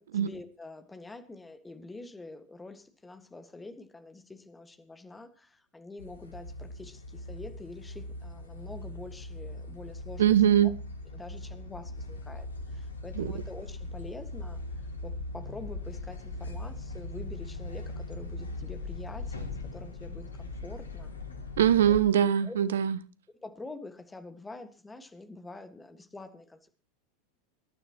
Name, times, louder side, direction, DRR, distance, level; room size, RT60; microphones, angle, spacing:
voice 1, 0.0-10.3 10.6-10.7 11.1-14.6 15.0-21.1 21.9-22.0 22.4-22.6 23.4-26.7, left 2 dB, 10° left, 1.7 m, -46 dB
sound 1, 6.0-22.0, left 2 dB, 75° left, 1.9 m, -40 dB
voice 2, 10.2-10.7 13.2-13.3 21.6-23.0, right 10 dB, 65° right, 0.7 m, -22 dB
24.5 x 12.0 x 3.0 m
figure-of-eight pair, 85°, 0 cm